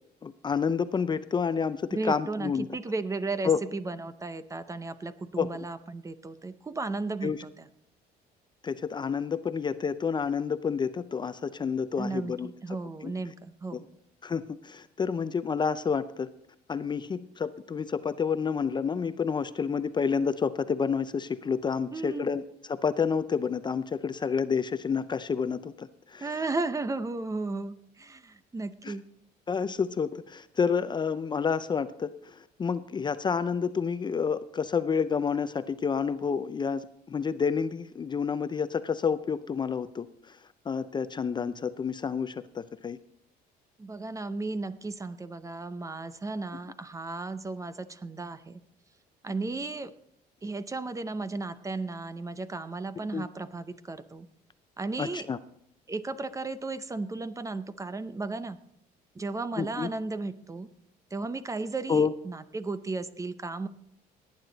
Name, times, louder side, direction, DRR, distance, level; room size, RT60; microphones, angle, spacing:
voice 1, 0.2-2.7 3.4-3.6 5.4-5.5 7.2-7.4 8.6-12.5 13.0-13.1 14.2-16.3 16.7-22.4 22.7-26.4 28.8-28.9 29.5-40.4 40.7-43.0 53.1-53.3 55.0-55.4 59.6-59.9 61.9-62.1, left 6 dB, 25° left, 13 dB, 0.5 m, -29 dB
voice 2, 1.9-7.6 12.0-13.8 21.9-22.3 26.2-29.0 43.8-48.6 49.2-49.9 50.4-54.3 54.8-55.3 55.9-58.6 59.2-60.7 61.1-63.7, right 3 dB, 20° right, 14 dB, 0.7 m, -34 dB
18.0 x 9.5 x 4.0 m, 0.73 s
cardioid pair, 110°, 17 cm